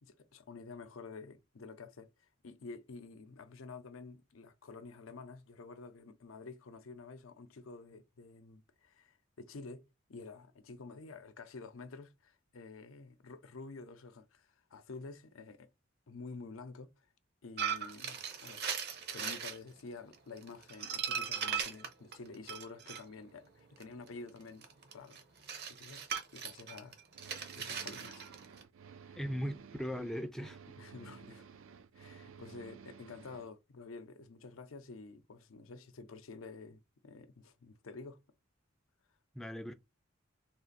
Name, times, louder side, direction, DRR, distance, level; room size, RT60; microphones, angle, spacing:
voice 1, 0.0-9.8 10.1-15.7 16.1-17.1 17.4-18.7 19.1-24.7 24.9-25.2 25.7-26.0 26.3-27.0 27.6-28.3 29.1-29.2 30.8-31.5 32.0-38.2, left 4 dB, 85° left, 0.6 m, -50 dB
sound 1, 17.6-19.6 20.1-23.0 23.8-28.6, right 7 dB, 55° right, 0.8 m, -38 dB
sound 2, 27.1-33.5, right 6 dB, 75° right, 0.4 m, -54 dB
voice 2, 29.2-30.6 39.3-39.7, equal, ahead, 0.4 m, -38 dB
3.6 x 2.5 x 3.9 m
head